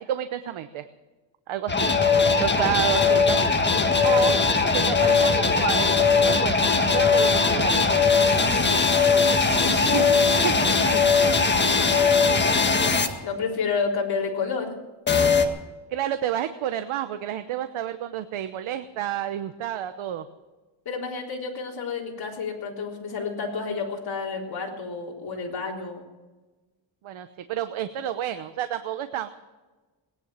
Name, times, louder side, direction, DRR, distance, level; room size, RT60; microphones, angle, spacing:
voice 1, 0.1-0.8 1.5-1.9 2.1-3.4 4.0-4.4 4.7-7.8 9.7-10.5 10.8-11.1 11.5-11.6 15.9-20.3 27.0-29.3, right 11 dB, 85° right, 9 dB, 1.0 m, -30 dB
sound 1, 1.7-13.1 15.1-15.5, left 4 dB, 20° left, 1.7 m, -20 dB
voice 2, 9.6-10.1 12.2-12.5 13.0-14.8 20.9-26.1, left 5 dB, 50° left, -2 dB, 3.7 m, -31 dB
19.0 x 10.0 x 7.4 m, 1.2 s
cardioid pair, 105°, 47 cm